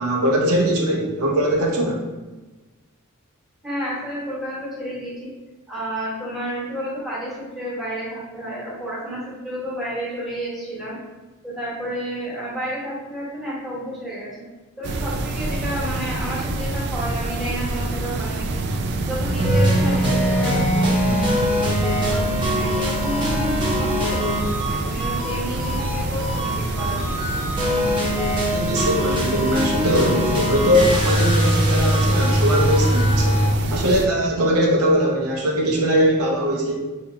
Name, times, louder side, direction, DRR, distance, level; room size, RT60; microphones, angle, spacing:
voice 1, 0.0-2.1 28.5-33.4 33.7-36.9, equal, 75° right, -2 dB, 0.7 m, -21 dB
voice 2, 3.6-5.3 5.7-11.0 11.4-14.4 14.8-18.6 19.0-24.3 24.6-27.1, equal, ahead, -8 dB, 1.1 m, -31 dB
sound 1, 14.8-34.1, right 2 dB, 50° right, 0.3 m, -26 dB
sound 2, 19.4-33.5, equal, 20° right, 0.8 m, -22 dB
4.0 x 2.9 x 2.6 m, 1.2 s
head